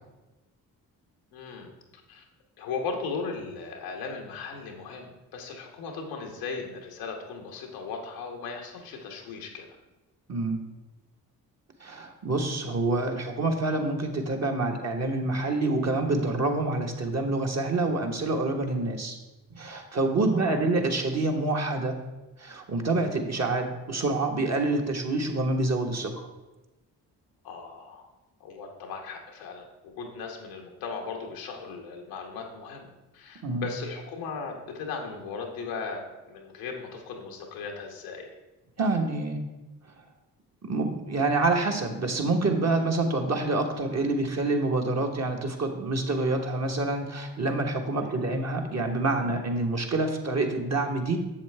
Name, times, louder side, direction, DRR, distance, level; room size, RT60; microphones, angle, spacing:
voice 1, 1.3-1.7 2.1-2.2 2.6-9.7 20.2-20.6 27.4-28.1 28.4-32.9 33.1-38.3 48.0-48.2, left 4 dB, 90° left, 2 dB, 1.1 m, -37 dB
voice 2, 10.3-10.6 11.8-19.2 19.5-22.0 22.4-26.3 33.4-33.7 38.8-39.4 40.6-51.2, right 2 dB, 40° right, 3 dB, 1.3 m, -27 dB
7.3 x 7.1 x 3.3 m, 1.1 s
hypercardioid pair, 45°, 41 cm